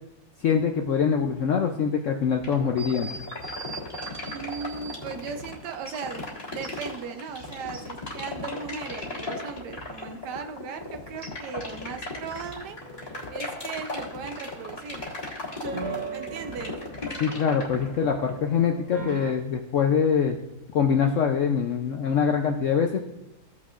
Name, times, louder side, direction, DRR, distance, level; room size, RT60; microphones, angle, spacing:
voice 1, 0.4-3.1 17.2-20.4 20.7-23.0, left 7 dB, 70° left, 4 dB, 0.7 m, -24 dB
sound 1, 2.4-18.4, left 2 dB, 20° left, 1.8 m, -36 dB
sound 2, 2.8-5.0 5.9-6.0 6.6-7.9 11.2-11.3, right 3 dB, 45° right, 0.9 m, -41 dB
voice 2, 4.3-6.3 6.5-15.1 15.6-16.9, right 5 dB, 75° right, 7 dB, 1.3 m, -37 dB
sound 3, 12.8-14.3 15.6-19.3, right 4 dB, 25° right, 1.8 m, -39 dB
15.5 x 6.0 x 2.4 m, 0.92 s
omnidirectional pair, 1.8 m